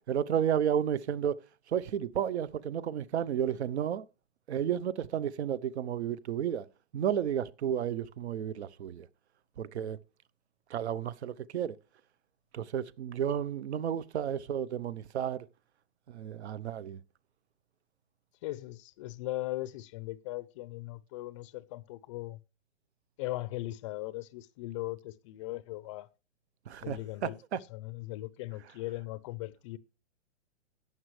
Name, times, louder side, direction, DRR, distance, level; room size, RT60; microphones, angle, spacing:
voice 1, 0.1-1.4 1.7-4.1 4.5-6.7 6.9-9.1 9.6-10.0 10.7-11.8 12.5-15.5 16.1-17.0 26.7-27.6, right 9 dB, 65° right, 0.9 m, -32 dB
voice 2, 18.4-22.4 23.2-26.1 26.8-27.4 27.7-29.8, left 18 dB, 25° left, 0.5 m, -39 dB
14.0 x 9.2 x 3.2 m
hypercardioid pair, 145°, 37 cm